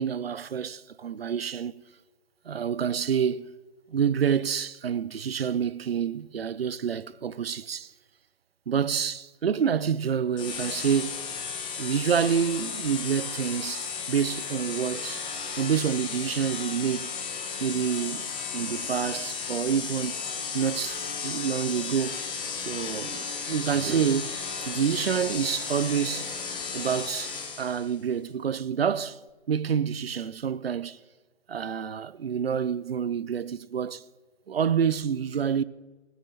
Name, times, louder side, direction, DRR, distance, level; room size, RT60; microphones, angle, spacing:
voice 1, 0.0-1.8 2.4-3.5 3.9-7.9 8.7-11.3 11.8-15.3 15.6-17.1 17.6-20.2 20.5-22.2 22.6-24.3 24.6-26.3 26.7-29.2 29.5-31.0 31.5-34.0 34.5-35.6, right 7 dB, 65° right, 0.7 m, -28 dB
sound 1, 10.4-27.9, left 6 dB, 15° left, 1.3 m, -34 dB
25.0 x 15.5 x 3.0 m
figure-of-eight pair, 130°, 32 cm